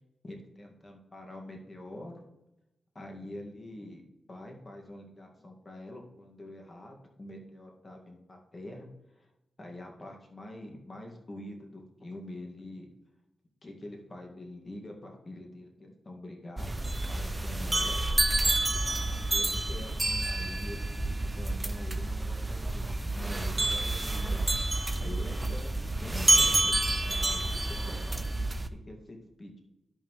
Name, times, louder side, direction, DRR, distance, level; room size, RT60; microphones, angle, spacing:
voice 1, 0.2-2.3 2.9-4.0 4.3-9.3 9.6-12.9 13.6-18.1 19.0-19.1 19.3-24.4 24.8-28.5 28.9-29.6, left 1 dB, 35° left, 1 dB, 2.0 m, -45 dB
sound 1, 16.6-28.7, right 2 dB, 20° right, 0.5 m, -29 dB
11.5 x 5.5 x 3.2 m, 0.92 s
cardioid pair, 65°, 0 cm